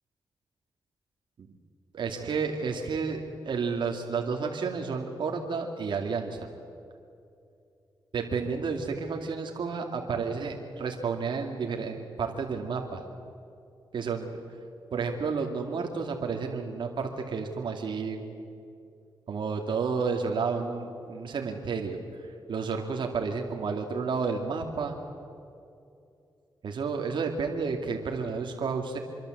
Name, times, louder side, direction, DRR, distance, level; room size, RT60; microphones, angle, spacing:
voice 1, 1.9-6.4 8.1-13.0 13.9-14.4 14.9-18.4 19.3-25.0 26.6-29.0, right 5 dB, 70° right, 2 dB, 2.4 m, -31 dB
26.5 x 23.0 x 7.9 m, 2.6 s
cardioid pair, 80°, 8 cm